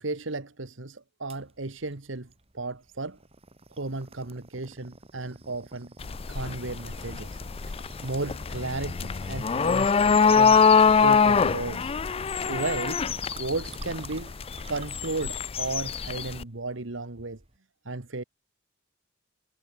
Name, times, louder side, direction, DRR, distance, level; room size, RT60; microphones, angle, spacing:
voice 1, 0.0-2.3 2.5-3.2 3.8-5.9 6.3-7.3 8.0-10.6 11.0-11.9 12.5-13.0 13.4-14.3 14.7-17.4 17.8-18.2, right 3 dB, 70° right, 1.5 m, -34 dB
sound 1, 1.3-17.6, right 2 dB, 30° right, 3.5 m, -49 dB
sound 2, 6.0-16.4, left 5 dB, 30° left, 0.4 m, -24 dB
head